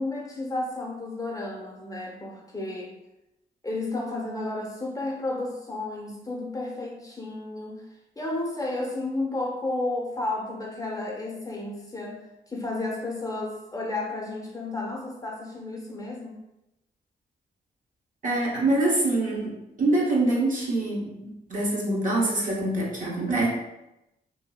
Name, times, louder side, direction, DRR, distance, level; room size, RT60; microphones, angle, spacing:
voice 1, 0.0-2.9 3.6-7.9 8.2-16.4, left 2 dB, 20° left, -2 dB, 0.7 m, -32 dB
voice 2, 18.2-21.1 21.5-23.5, right 2 dB, 45° right, -4 dB, 0.9 m, -25 dB
2.7 x 2.5 x 2.2 m, 0.91 s
cardioid pair, 60°, 19 cm